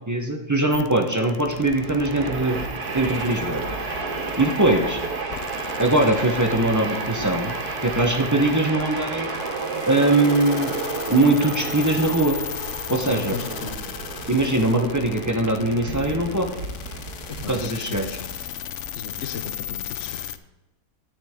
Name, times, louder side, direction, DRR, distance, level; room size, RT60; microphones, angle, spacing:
voice 1, 0.1-2.6 2.9-3.7 4.4-5.0 5.8-7.6 7.8-9.3 9.9-10.7 11.1-12.4 12.9-13.4 14.3-16.5 17.5-18.1, right 2 dB, 25° right, 3 dB, 0.3 m, -21 dB
sound 1, 0.7-20.4, left 10 dB, 90° left, 0.6 m, -37 dB
Train, 1.3-18.9, right 3 dB, 60° right, 1.8 m, -32 dB
voice 2, 12.9-14.0 17.4-18.3 18.9-20.2, left 6 dB, 55° left, 9 dB, 0.8 m, -36 dB
11.0 x 10.0 x 3.6 m, 1.0 s
omnidirectional pair, 1.9 m